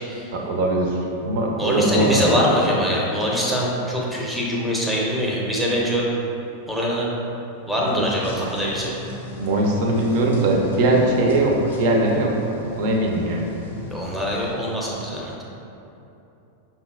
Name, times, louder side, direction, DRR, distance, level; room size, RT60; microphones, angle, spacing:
voice 1, 0.3-2.4 7.9-8.1 9.4-12.5 12.8-13.5, right 1 dB, 50° right, 0 dB, 0.5 m, -20 dB
voice 2, 1.6-6.0 6.7-7.1 7.7-9.0 13.9-15.3, equal, 5° right, -4 dB, 0.6 m, -23 dB
sound 1, 8.2-14.6, left 2 dB, 65° left, 0.5 m, -38 dB
5.4 x 2.3 x 2.3 m, 2.9 s
figure-of-eight pair, 90°, 0 cm